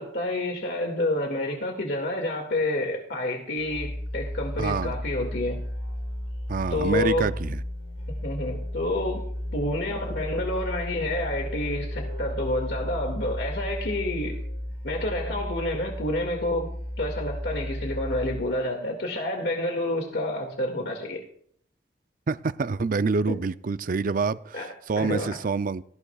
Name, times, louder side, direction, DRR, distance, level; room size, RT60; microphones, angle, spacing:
voice 1, 0.0-5.7 6.7-7.3 8.2-9.2 9.5-14.4 14.8-16.7 17.0-21.2 23.3-23.4 24.5-24.7 25.0-25.4, left 1 dB, 70° left, 2 dB, 2.1 m, -29 dB
Musical instrument, 3.5-18.6, left 1 dB, 85° left, 3.8 m, -34 dB
voice 2, 4.6-5.0 6.5-7.6 22.3-25.8, right 4 dB, 50° right, 14 dB, 0.5 m, -27 dB
18.0 x 15.0 x 2.4 m, 0.65 s
head